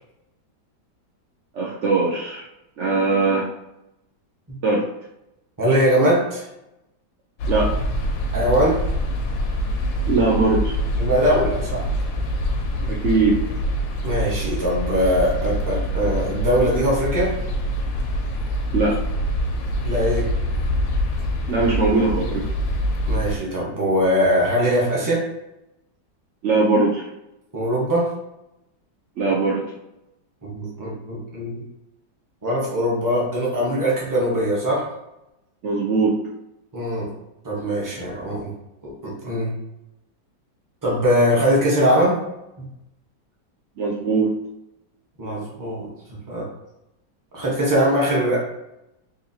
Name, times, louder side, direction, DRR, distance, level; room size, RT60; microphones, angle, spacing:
voice 1, 1.5-2.4 2.8-3.5 4.6-4.9 7.5-7.7 10.1-10.8 12.8-13.4 18.7-19.0 21.5-22.4 26.4-27.1 29.2-29.6 35.6-36.2 43.8-44.3, right 3 dB, 80° right, -3 dB, 0.6 m, -20 dB
voice 2, 5.6-6.4 8.3-8.8 11.0-11.8 14.0-17.3 19.8-20.3 23.0-25.3 27.5-28.1 30.4-31.5 32.4-34.8 36.7-37.1 37.4-38.5 38.8-39.5 40.8-42.2 42.6-42.7 45.2-45.9 46.3-46.4 47.3-48.4, equal, 15° right, -5 dB, 0.7 m, -21 dB
sound 1, 7.4-23.4, equal, 85° left, 1.3 m, -25 dB
4.0 x 2.8 x 2.7 m, 0.89 s
omnidirectional pair, 1.9 m